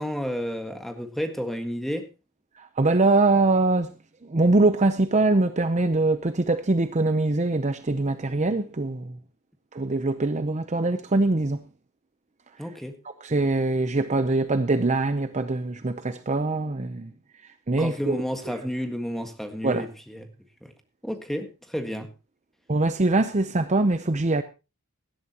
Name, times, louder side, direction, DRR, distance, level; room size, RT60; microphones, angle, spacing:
voice 1, 0.0-2.0 12.6-12.9 17.8-20.3 20.6-20.7 21.0-22.1, equal, ahead, 1.6 m, -31 dB
voice 2, 2.6-3.9 4.3-9.2 9.7-11.6 13.2-17.1 17.7-18.2 19.6-19.9 22.7-24.4, right 2 dB, 30° right, 0.7 m, -23 dB
17.5 x 12.0 x 2.9 m
head